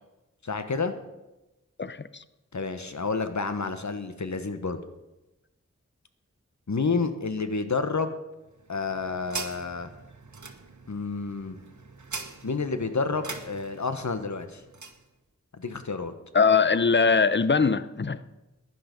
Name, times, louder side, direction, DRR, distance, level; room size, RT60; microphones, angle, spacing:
voice 1, 0.4-0.9 2.5-4.8 6.7-8.1 8.7-9.9 10.9-11.6 12.4-14.6 15.5-16.1, left 4 dB, 70° left, 9 dB, 1.3 m, -29 dB
voice 2, 1.8-2.2 16.3-18.3, left 5 dB, 40° left, 15 dB, 0.7 m, -22 dB
sound 1, 8.4-15.0, right 4 dB, 75° right, 1.4 m, -42 dB
15.5 x 11.0 x 5.3 m, 1.0 s
wide cardioid pair, 45°, 30 cm